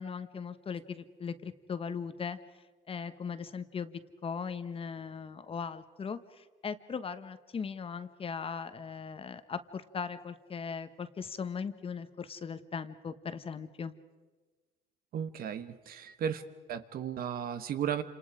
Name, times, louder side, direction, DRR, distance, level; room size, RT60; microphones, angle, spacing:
voice 1, 0.0-2.4 2.9-13.9, left 6 dB, 35° left, 11 dB, 1.2 m, -39 dB
voice 2, 15.1-16.4 16.7-18.0, right 8 dB, 60° right, 11 dB, 1.4 m, -35 dB
29.0 x 27.0 x 5.0 m, 1.3 s
cardioid pair, 110°, 17 cm